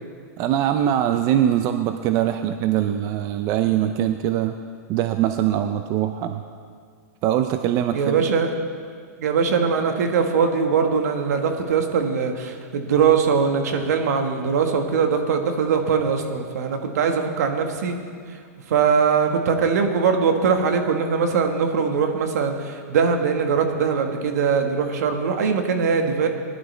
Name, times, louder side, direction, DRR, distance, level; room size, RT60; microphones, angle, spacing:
voice 1, 0.4-4.6 4.9-6.4 7.2-8.2, right 11 dB, 40° right, 8 dB, 0.6 m, -22 dB
voice 2, 7.9-8.5 9.2-17.9 18.7-26.3, right 6 dB, 70° right, 5 dB, 1.7 m, -21 dB
19.5 x 11.0 x 3.4 m, 2.1 s
hypercardioid pair, 130°, 9 cm